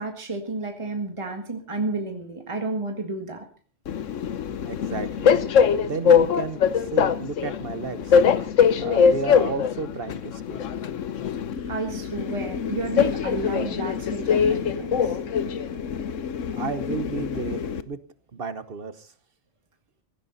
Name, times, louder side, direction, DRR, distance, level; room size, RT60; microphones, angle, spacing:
voice 1, 0.0-3.4 11.7-15.2, right 3 dB, 25° right, 4 dB, 1.9 m, -31 dB
Train, 3.9-17.8, left 7 dB, 80° left, 1.2 m, -23 dB
voice 2, 4.6-5.5 5.8-8.1 8.8-10.6 16.5-18.0 18.3-19.1, right 5 dB, 50° right, 12 dB, 1.3 m, -33 dB
16.5 x 15.5 x 4.1 m, 0.39 s
omnidirectional pair, 1.3 m